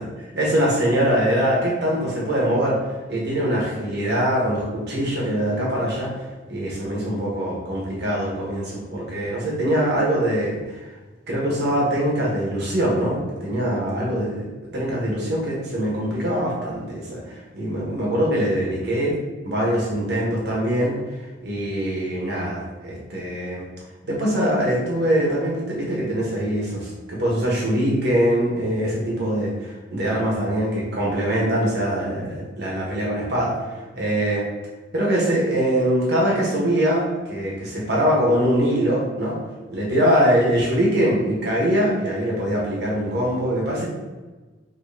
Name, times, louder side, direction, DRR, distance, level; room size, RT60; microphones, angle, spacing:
voice 1, 0.3-2.8 3.1-6.1 6.5-10.9 11.3-14.4 14.7-19.2 19.4-21.0 21.4-23.6 24.0-34.4 34.9-39.4 39.7-43.9, equal, 55° right, -4 dB, 1.2 m, -23 dB
5.1 x 3.0 x 2.8 m, 1.2 s
head